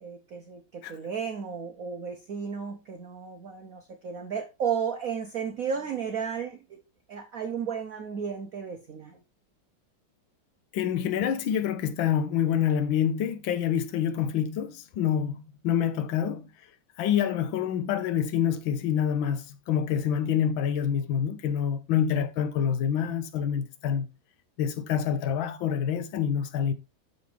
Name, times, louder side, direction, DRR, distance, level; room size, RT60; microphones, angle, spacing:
voice 1, 0.0-6.8 7.1-9.2, right 7 dB, 55° right, 1.1 m, -33 dB
voice 2, 10.7-16.5 17.0-24.1 24.6-26.7, left 9 dB, 85° left, 1.6 m, -27 dB
8.3 x 6.6 x 3.3 m
omnidirectional pair, 2.1 m